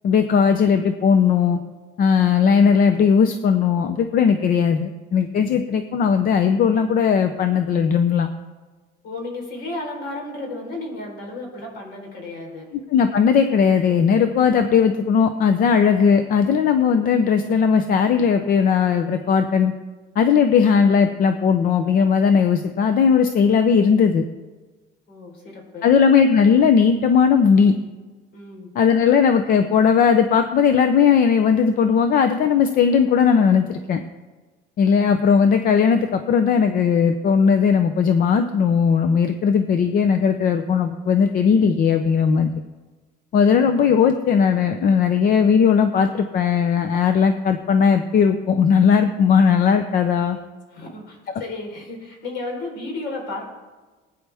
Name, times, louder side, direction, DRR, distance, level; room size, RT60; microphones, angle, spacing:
voice 1, 0.0-1.6 2.0-8.3 12.9-19.7 20.2-24.2 25.8-27.8 28.7-34.0 34.8-42.5 43.3-50.4, left 6 dB, 50° left, 8 dB, 0.7 m, -17 dB
voice 2, 9.0-12.7 25.1-25.9 28.3-28.7 50.7-53.5, left 2 dB, 65° left, 0 dB, 4.0 m, -33 dB
20.0 x 9.4 x 3.5 m, 1.3 s
cardioid pair, 155°, 19 cm